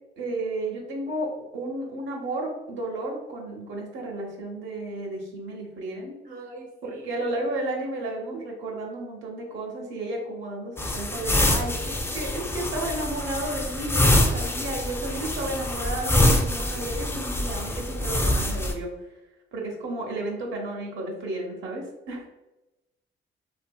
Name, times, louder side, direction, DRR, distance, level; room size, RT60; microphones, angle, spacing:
voice 1, 0.2-6.1 6.8-19.2 19.5-22.3, right 1 dB, 75° right, -1 dB, 0.8 m, -33 dB
voice 2, 6.2-7.5 8.3-8.4 15.2-15.8, right 3 dB, 45° right, -1 dB, 0.6 m, -44 dB
sound 1, 10.8-18.7, left 1 dB, 10° left, 0.4 m, -25 dB
2.6 x 2.6 x 2.2 m, 0.98 s
cardioid pair, 90°, 20 cm